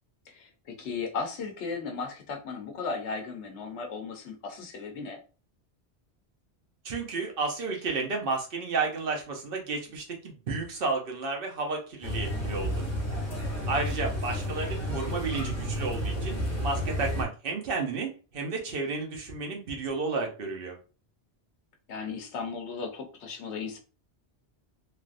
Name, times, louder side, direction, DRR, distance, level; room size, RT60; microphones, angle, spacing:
voice 1, 0.3-5.2 13.5-14.0 21.9-23.8, left 4 dB, 80° left, 3 dB, 1.0 m, -36 dB
voice 2, 6.8-12.8 13.7-20.8, right 3 dB, 60° right, 1 dB, 0.9 m, -32 dB
sound 1, 12.0-17.2, equal, 15° left, 0.8 m, -31 dB
3.3 x 2.5 x 2.4 m, 0.34 s
omnidirectional pair, 1.1 m